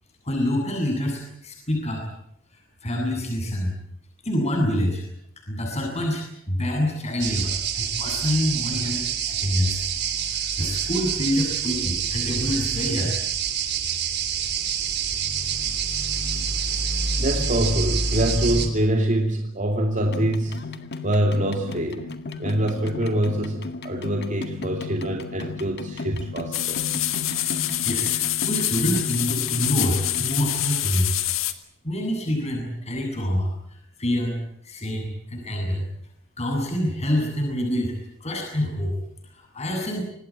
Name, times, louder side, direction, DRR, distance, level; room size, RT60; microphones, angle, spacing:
voice 1, 0.2-2.0 2.5-3.7 4.2-5.0 5.5-9.8 10.2-13.2 27.2-28.2 28.5-31.1 31.8-35.8 36.4-37.9 38.2-38.9 39.2-40.0, equal, 35° left, 1 dB, 8.0 m, -26 dB
sound 1, 7.2-18.7, right 6 dB, 55° right, 3.4 m, -27 dB
voice 2, 17.2-20.6 21.0-22.1 22.4-26.8, right 1 dB, 40° right, 2 dB, 2.7 m, -25 dB
sound 2, 20.0-30.3, left 3 dB, 55° left, 1.8 m, -35 dB
sound 3, 26.5-31.5, left 14 dB, 85° left, 1.8 m, -26 dB
26.0 x 20.0 x 8.7 m, 0.73 s
head